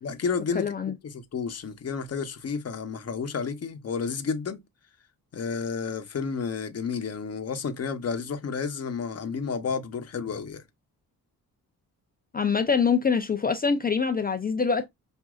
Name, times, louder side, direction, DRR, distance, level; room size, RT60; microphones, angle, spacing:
voice 1, 0.0-0.7 1.0-4.6 5.3-10.6, left 5 dB, 40° left, 0.9 m, -31 dB
voice 2, 0.5-0.9 12.3-14.8, left 5 dB, 25° left, 0.5 m, -24 dB
6.1 x 2.6 x 2.3 m
cardioid pair, 110°, 37 cm